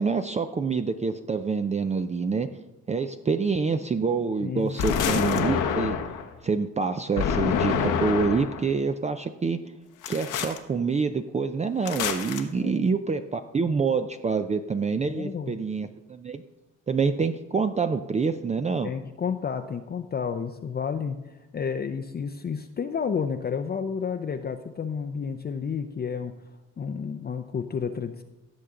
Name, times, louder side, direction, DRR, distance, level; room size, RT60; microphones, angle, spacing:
voice 1, 0.0-2.5 2.9-6.0 6.4-9.6 10.1-16.4 16.9-18.9, right 5 dB, 25° right, 8 dB, 0.5 m, -26 dB
voice 2, 4.4-4.8 12.5-12.9 15.1-15.5 18.8-26.3 26.8-28.2, left 6 dB, 30° left, 6 dB, 0.6 m, -31 dB
sound 1, 4.8-6.3 7.2-8.6 10.0-10.6 11.8-12.4, left 7 dB, 90° left, 1.2 m, -26 dB
16.0 x 6.7 x 3.8 m, 1.0 s
cardioid pair, 90°, 30 cm